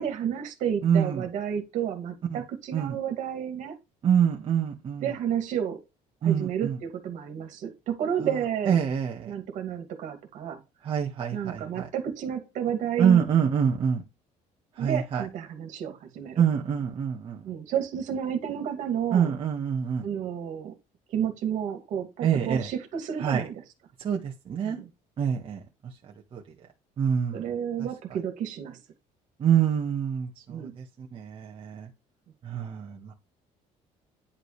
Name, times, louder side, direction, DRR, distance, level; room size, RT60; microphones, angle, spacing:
voice 1, 0.0-3.8 5.0-5.8 6.2-8.8 9.3-10.6 11.3-13.2 14.8-16.4 17.4-19.3 20.0-20.7 21.1-23.6 24.6-24.8 27.3-28.8 30.5-30.7, right 9 dB, 65° right, 2.5 m, -31 dB
voice 2, 0.8-1.3 2.3-2.4 2.7-3.0 4.0-5.1 6.2-6.8 8.7-9.3 10.8-11.9 13.0-14.0 14.8-15.2 16.4-17.4 19.1-20.0 22.2-22.7 23.2-23.4 24.0-24.8 25.2-25.6 26.3-26.4 27.0-27.5 29.4-31.9 32.4-33.1, right 8 dB, 40° right, 1.5 m, -26 dB
10.0 x 5.1 x 3.3 m
cardioid pair, 140°, 14 cm